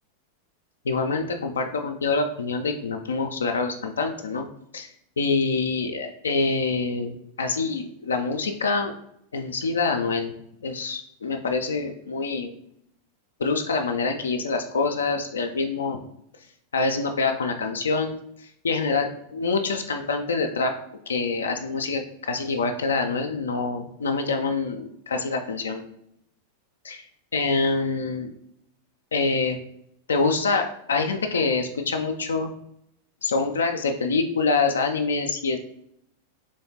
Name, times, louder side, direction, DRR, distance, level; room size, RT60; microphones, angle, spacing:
voice 1, 0.9-4.4 4.7-4.9 5.2-8.9 9.3-10.3 10.6-12.5 13.4-16.0 16.7-18.1 18.4-20.7 21.1-25.8 26.8-27.0 27.3-28.3 29.1-29.6 30.1-32.5 33.2-35.6, left 4 dB, 70° left, 5 dB, 0.3 m, -25 dB
3.4 x 3.1 x 2.8 m, 0.76 s
figure-of-eight pair, 90°, 0 cm